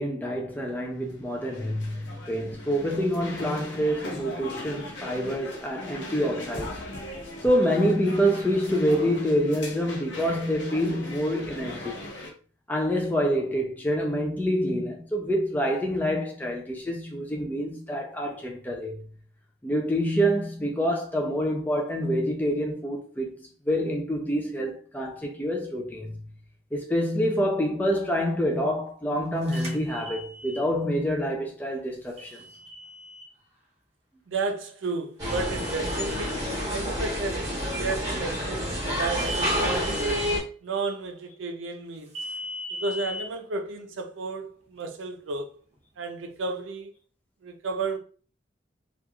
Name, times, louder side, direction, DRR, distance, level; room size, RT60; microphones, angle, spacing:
voice 1, 0.0-6.8 7.4-11.9 12.7-19.0 19.6-26.1 26.7-32.4, equal, 10° left, 0.3 m, -27 dB
sound 1, 0.7-12.3, left 1 dB, 65° left, 0.7 m, -39 dB
sound 2, 29.5-30.6 32.2-33.3 35.3-36.4 39.2-40.4 42.1-43.2, left 1 dB, 35° right, 0.7 m, -39 dB
voice 2, 34.3-36.4 36.7-40.1 40.6-42.1 42.7-45.5 46.0-46.9 47.4-48.0, right 3 dB, 80° right, 0.5 m, -32 dB
sound 3, 35.2-40.4, equal, 20° right, 1.1 m, -28 dB
3.0 x 2.4 x 2.2 m
head